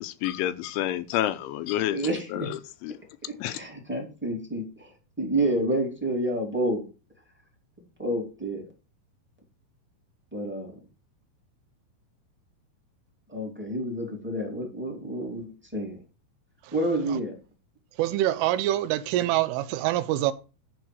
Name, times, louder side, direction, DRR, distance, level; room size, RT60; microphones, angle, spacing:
voice 1, 0.0-3.0 3.4-3.6, left 13 dB, 80° left, 3.0 m, -29 dB
voice 2, 1.9-2.5 3.3-6.8 7.8-8.6 10.3-10.7 13.3-15.5 15.7-16.0 16.7-17.3, right 1 dB, 5° right, 1.4 m, -29 dB
voice 3, 18.0-20.3, right 14 dB, 80° right, 3.2 m, -25 dB
11.5 x 4.4 x 7.8 m
omnidirectional pair, 5.8 m